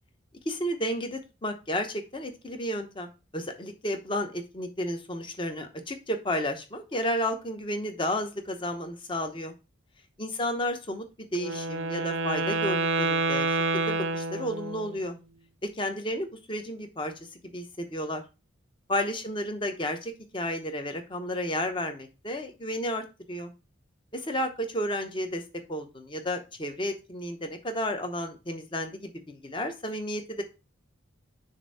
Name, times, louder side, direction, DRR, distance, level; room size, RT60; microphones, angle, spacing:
voice 1, 0.5-9.5 10.2-11.0 11.3-13.6 13.9-15.1 15.6-17.1 17.5-18.2 18.9-23.5 24.1-25.4 25.7-30.4, equal, 25° left, 6 dB, 0.8 m, -32 dB
Wind instrument woodwind instrument, 11.3-15.0, right 3 dB, 70° right, 0.5 m, -28 dB
6.7 x 2.6 x 5.4 m, 0.29 s
head